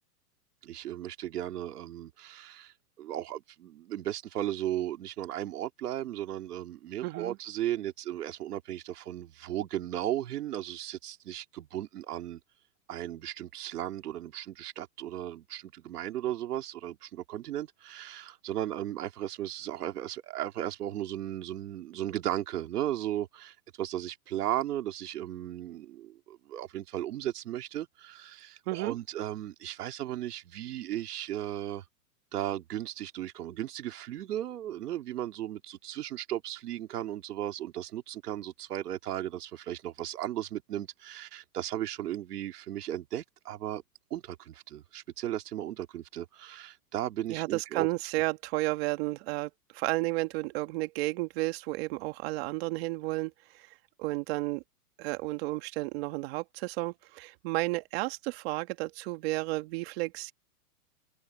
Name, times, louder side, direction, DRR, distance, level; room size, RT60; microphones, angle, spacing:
voice 1, 0.6-12.4 12.9-31.8 32.3-43.8 44.1-47.9, right 12 dB, 75° right, 2.3 m, -36 dB
voice 2, 7.0-7.4 28.7-28.9 47.3-53.7 54.0-54.6 55.0-60.3, right 22 dB, 40° right, 1.7 m, -32 dB
hypercardioid pair, 155°, 47 cm